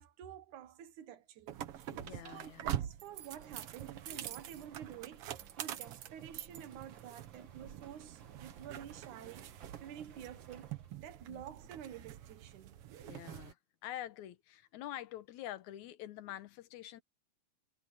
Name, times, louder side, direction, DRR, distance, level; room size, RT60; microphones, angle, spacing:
voice 1, 0.0-9.5 9.8-12.8, right 10 dB, 80° right, 2.9 m, -50 dB
sound 1, 1.5-13.5, right 11 dB, 60° right, 1.7 m, -45 dB
voice 2, 1.9-2.6 4.1-4.2 11.3-11.4 13.0-13.6 13.8-17.0, left 13 dB, 75° left, 2.4 m, -46 dB
sound 2, 2.9-12.2, right 6 dB, 45° right, 2.0 m, -61 dB
omnidirectional pair, 3.4 m